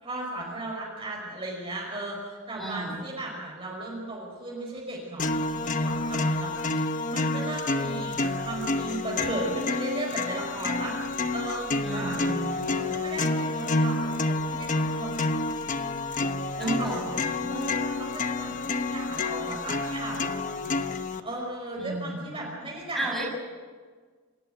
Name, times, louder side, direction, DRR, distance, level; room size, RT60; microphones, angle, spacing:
voice 1, 0.0-6.5 6.8-11.0 11.3-12.2 12.7-15.7 16.6-20.4 21.2-23.2, right 2 dB, 25° right, -3 dB, 5.2 m, -36 dB
voice 2, 2.6-3.0 11.8-12.9 16.6-17.5 21.8-22.5 22.9-23.2, right 1 dB, ahead, -1 dB, 6.6 m, -35 dB
sound 1, 5.2-21.2, left 2 dB, 35° left, 1.0 m, -29 dB
27.5 x 14.0 x 9.2 m, 1.5 s
head